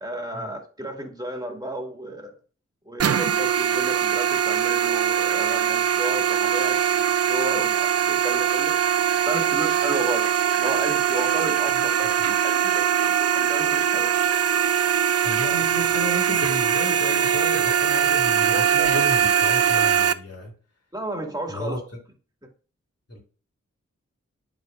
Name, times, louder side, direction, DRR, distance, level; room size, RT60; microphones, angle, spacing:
voice 1, 0.0-2.4 2.9-8.8 9.3-14.1 18.5-19.0 20.9-21.8, right 1 dB, 15° right, 2.1 m, -33 dB
sound 1, 3.0-20.1, right 8 dB, 55° right, 0.5 m, -22 dB
voice 2, 15.2-20.5 21.5-21.8 23.1-23.2, equal, 55° left, 2.6 m, -32 dB
12.0 x 4.1 x 2.5 m
wide cardioid pair, 70°, 29 cm